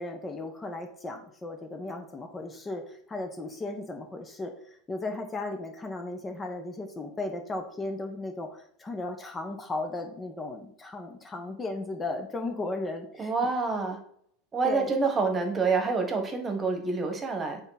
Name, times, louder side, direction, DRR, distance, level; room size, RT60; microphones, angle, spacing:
voice 1, 0.0-13.3 14.6-15.1, left 2 dB, 20° left, 5 dB, 1.1 m, -36 dB
voice 2, 13.2-14.0 14.5-17.6, right 4 dB, 25° right, 4 dB, 1.5 m, -27 dB
7.7 x 3.6 x 4.2 m, 0.65 s
figure-of-eight pair, 80°, 0 cm